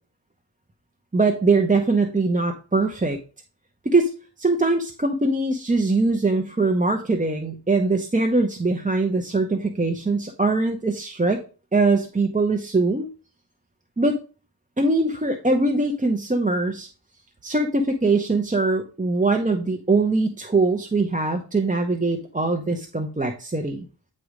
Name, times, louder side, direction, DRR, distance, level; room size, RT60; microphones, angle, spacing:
voice 1, 1.1-3.2 3.8-4.1 4.4-11.4 11.7-13.1 14.0-14.2 14.8-16.9 17.4-23.9, right 3 dB, 15° right, 4 dB, 0.7 m, -22 dB
9.2 x 3.2 x 5.0 m, 0.35 s
wide cardioid pair, 80°, 45 cm